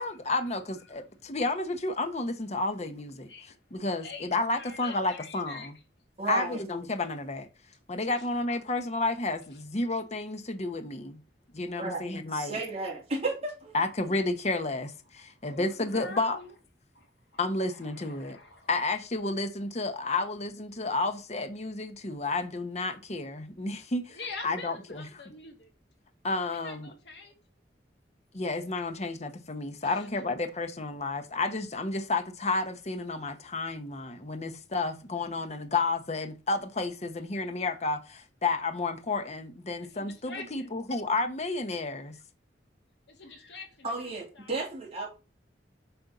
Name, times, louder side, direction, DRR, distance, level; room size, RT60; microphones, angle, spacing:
voice 1, 0.0-3.3 3.7-5.7 6.3-7.5 7.9-11.2 11.5-12.6 13.7-16.4 17.4-18.4 18.7-24.2 24.4-25.1 26.2-26.9 28.3-42.1, left 3 dB, 40° left, 1.0 m, -31 dB
voice 2, 0.9-1.4 3.3-3.5 4.0-4.3 4.6-5.7 8.2-8.3 15.2-16.5 16.9-17.1 17.3-18.7 24.1-25.7 26.5-27.4 29.8-30.1 39.8-40.7 43.1-43.9 44.4-44.6, left 4 dB, 70° left, 2.5 m, -45 dB
voice 3, 6.2-6.6 11.8-12.0 12.3-13.8 43.8-45.1, right 3 dB, 35° right, 2.9 m, -33 dB
7.9 x 4.4 x 5.4 m
head